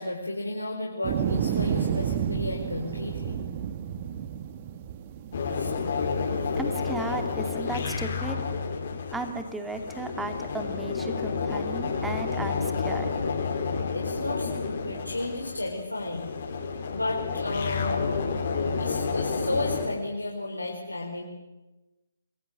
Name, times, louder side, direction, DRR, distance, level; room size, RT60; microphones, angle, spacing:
voice 1, 0.0-3.4 5.5-5.7 6.4-6.5 13.9-16.6 16.9-18.2 18.8-21.2, left 2 dB, 85° left, -1 dB, 4.7 m, -33 dB
sound 1, 1.0-7.6, right 9 dB, 30° right, 1.6 m, -31 dB
sound 2, 5.3-19.9, left 5 dB, 45° left, 4.9 m, -30 dB
voice 2, 6.6-8.4 9.1-13.1, right 2 dB, 5° right, 5 dB, 2.8 m, -35 dB
28.0 x 21.5 x 7.8 m, 1.1 s
figure-of-eight pair, 135°, 0 cm